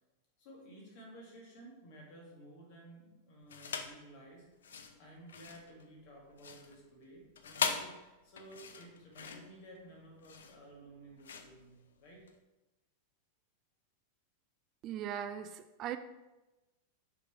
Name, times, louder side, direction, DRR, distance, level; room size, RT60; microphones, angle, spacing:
voice 1, 0.4-12.3, right 1 dB, 50° left, 2.1 m, -54 dB
sound 1, 3.5-4.0 4.5-12.4, left 6 dB, 65° left, 0.5 m, -41 dB
voice 2, 14.8-16.0, right 10 dB, 35° right, 0.3 m, -39 dB
6.3 x 5.4 x 3.3 m
figure-of-eight pair, 90°, 0 cm